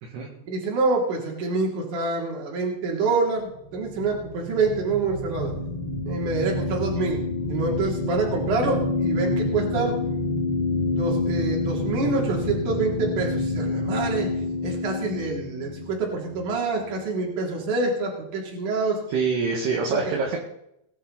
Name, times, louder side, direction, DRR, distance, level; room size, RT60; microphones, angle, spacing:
voice 1, 0.5-5.5 6.1-7.2 7.5-10.0 10.8-14.3 14.6-19.0 19.9-20.1, right 3 dB, 45° right, -1 dB, 4.0 m, -26 dB
sound 1, 3.5-17.2, left 2 dB, 65° left, 1.3 m, -28 dB
voice 2, 19.1-20.4, right 4 dB, 65° right, -2 dB, 3.5 m, -25 dB
20.0 x 11.0 x 4.1 m, 0.77 s
omnidirectional pair, 5.7 m